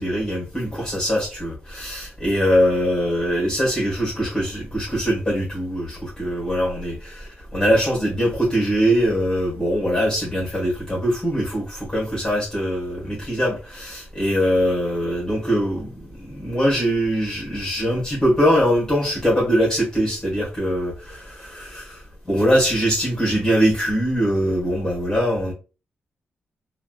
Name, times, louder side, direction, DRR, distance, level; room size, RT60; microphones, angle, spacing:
voice 1, 0.0-22.0 22.3-25.5, equal, 15° left, 1.5 m, -22 dB
3.3 x 2.5 x 2.3 m
wide cardioid pair, 140°, 4 cm